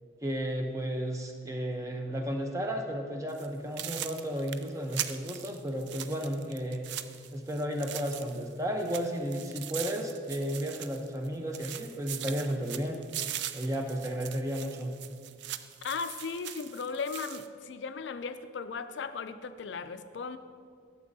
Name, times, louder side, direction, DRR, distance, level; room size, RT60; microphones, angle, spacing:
voice 1, 0.2-6.9 7.3-13.0 13.5-14.9, equal, 15° right, 3 dB, 0.7 m, -33 dB
sound 1, 3.3-3.5 3.8-8.5 8.8-11.3 11.5-17.5, right 11 dB, 60° right, 0.3 m, -40 dB
voice 2, 15.8-20.4, left 5 dB, 65° left, 11 dB, 0.4 m, -37 dB
13.0 x 7.4 x 2.7 m, 2.1 s
head